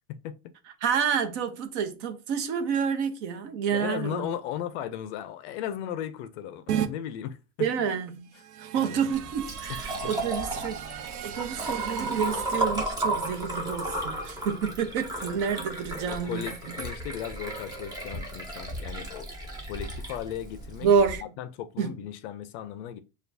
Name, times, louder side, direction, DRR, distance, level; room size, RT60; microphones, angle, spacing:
voice 1, 0.8-4.3 7.6-8.3 8.6-10.8 11.2-16.4 20.8-21.2 21.8-22.0, right 6 dB, 50° right, 0.8 m, -28 dB
voice 2, 3.7-7.7 8.8-9.1 9.7-9.8 10.0-10.1 16.1-19.3 19.7-20.9 21.4-23.0, left 10 dB, 50° left, 0.4 m, -36 dB
sound 1, 6.7-6.9 8.3-12.6, right 10 dB, 90° right, 0.6 m, -35 dB
Liquid, 9.1-21.2, right 1 dB, 10° right, 0.4 m, -34 dB
6.7 x 2.4 x 2.6 m
supercardioid pair, 150°, 45 cm